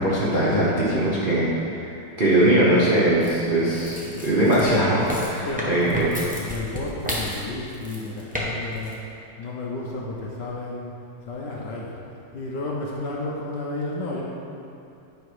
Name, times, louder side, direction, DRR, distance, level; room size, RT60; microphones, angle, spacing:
voice 1, 0.0-1.5 2.2-6.1, right 1 dB, 35° right, -8 dB, 0.8 m, -20 dB
sound 1, 3.2-8.4 8.7-8.9, equal, 10° right, 0.4 m, -32 dB
voice 2, 5.4-9.0 9.4-10.9 11.3-12.0 12.3-14.2, left 2 dB, 60° left, -3 dB, 1.3 m, -32 dB
9.0 x 5.6 x 4.8 m, 2.7 s
omnidirectional pair, 2.4 m